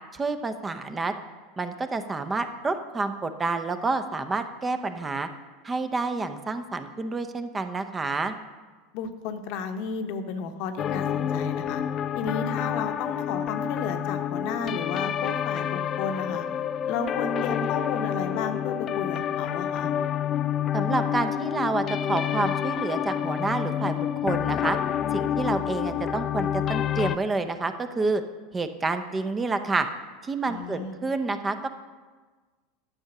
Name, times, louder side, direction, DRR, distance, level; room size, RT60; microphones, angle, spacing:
voice 1, 0.1-1.1 1.6-5.3 5.6-8.3 20.7-24.8 25.1-28.2 28.5-29.9 30.2-31.7, right 3 dB, 20° right, 9 dB, 0.8 m, -28 dB
voice 2, 8.9-11.8 12.1-16.5 16.9-19.9 30.5-30.9, left 5 dB, 55° left, 7 dB, 1.0 m, -33 dB
sound 1, 10.8-27.2, left 10 dB, 35° left, 0.4 m, -28 dB
11.5 x 6.5 x 6.0 m, 1.4 s
figure-of-eight pair, 80°, 0 cm